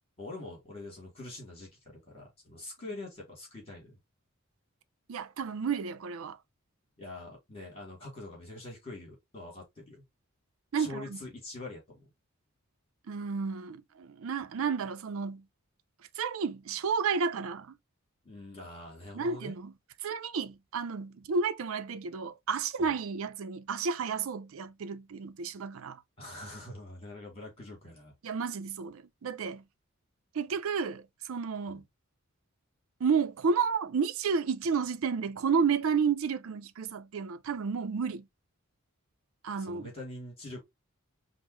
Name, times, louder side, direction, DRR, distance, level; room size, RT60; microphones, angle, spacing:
voice 1, 0.2-4.0 7.0-10.0 10.8-12.1 18.2-19.6 22.8-22.9 26.2-28.1 31.7-31.8 39.5-40.6, left 2 dB, 25° left, 2.3 m, -44 dB
voice 2, 5.1-6.4 10.7-11.2 13.1-15.4 16.2-17.7 19.1-19.7 20.0-26.0 28.2-29.6 30.3-31.8 33.0-38.3 39.4-39.9, right 5 dB, 70° right, 0.4 m, -31 dB
5.4 x 2.0 x 3.1 m
head